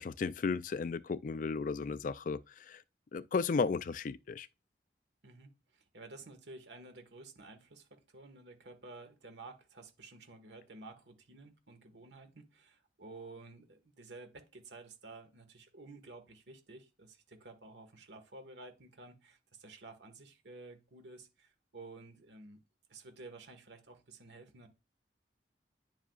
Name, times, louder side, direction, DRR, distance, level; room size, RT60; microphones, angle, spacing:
voice 1, 0.0-2.8 3.1-4.5, left 4 dB, 45° left, 0.3 m, -34 dB
voice 2, 5.2-22.6 22.9-24.7, right 3 dB, 80° right, 1.5 m, -52 dB
10.0 x 7.2 x 2.4 m
head